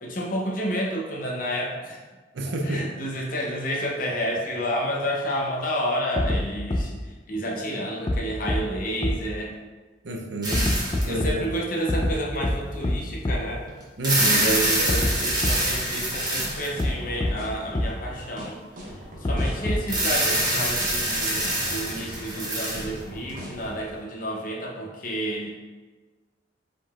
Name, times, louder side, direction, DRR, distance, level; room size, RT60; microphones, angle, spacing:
voice 1, 0.0-2.0 2.6-9.5 11.0-13.7 14.4-18.6 19.2-25.5, equal, 45° left, -2 dB, 0.7 m, -30 dB
voice 2, 2.3-2.9 10.0-11.4 14.0-15.1, right 1 dB, 70° right, 3 dB, 0.5 m, -29 dB
sound 1, 6.2-6.4 6.7-6.8 8.1-8.2 8.5-8.6 9.0-9.1 10.5-11.3 11.9-12.1 12.4-12.5 12.8-12.9 13.2-13.3 14.9-15.1 15.4-15.5 16.8-16.9 17.2-17.3 17.7-17.8 19.2-19.9, left 1 dB, 25° left, 0.4 m, -24 dB
sound 2, 10.4-11.2 11.9-12.0 13.8-17.0 19.9-23.3, right 1 dB, 20° right, 1.0 m, -25 dB
sound 3, 15.9-23.8, equal, 50° right, 1.0 m, -40 dB
4.9 x 3.8 x 2.4 m, 1.3 s
head